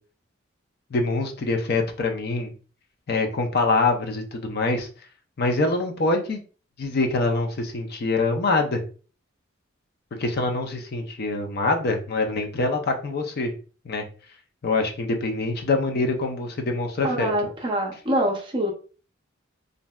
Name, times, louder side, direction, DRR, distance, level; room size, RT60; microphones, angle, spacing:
voice 1, 0.9-2.5 3.1-4.9 5.4-6.4 6.8-8.8 10.2-13.5 13.8-14.0 14.6-17.3, left 3 dB, 50° left, 4 dB, 0.5 m, -24 dB
voice 2, 17.0-18.7, right 1 dB, 25° right, 1 dB, 0.6 m, -25 dB
3.1 x 2.6 x 2.2 m, 0.38 s
head